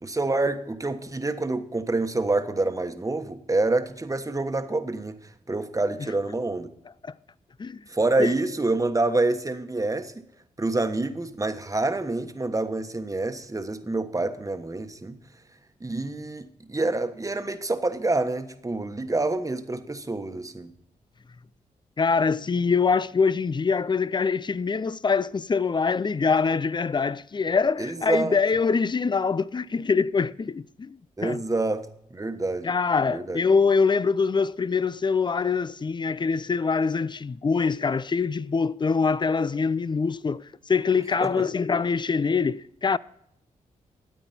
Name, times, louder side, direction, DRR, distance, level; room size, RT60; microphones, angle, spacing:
voice 1, 0.0-6.7 7.9-10.1 10.6-15.2 15.8-20.7 27.8-28.4 31.2-32.7 33.1-33.4 41.2-41.3, right 2 dB, 20° right, 1.3 m, -27 dB
voice 2, 22.0-31.4 32.6-43.0, left 5 dB, 30° left, 0.5 m, -24 dB
13.0 x 9.1 x 4.3 m
cardioid pair, 50°, 15 cm